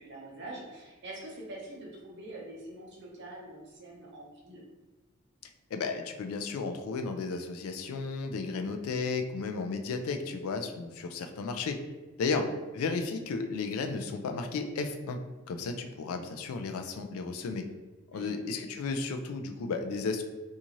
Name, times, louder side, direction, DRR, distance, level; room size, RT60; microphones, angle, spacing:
voice 1, 0.0-4.6 12.2-12.6 18.1-18.5, right 1 dB, 55° right, -3 dB, 0.7 m, -45 dB
voice 2, 5.7-11.8 12.2-12.5 12.7-15.2 15.5-17.6 18.1-20.2, left 4 dB, 80° left, 5 dB, 0.3 m, -33 dB
2.6 x 2.4 x 2.9 m, 1.2 s
head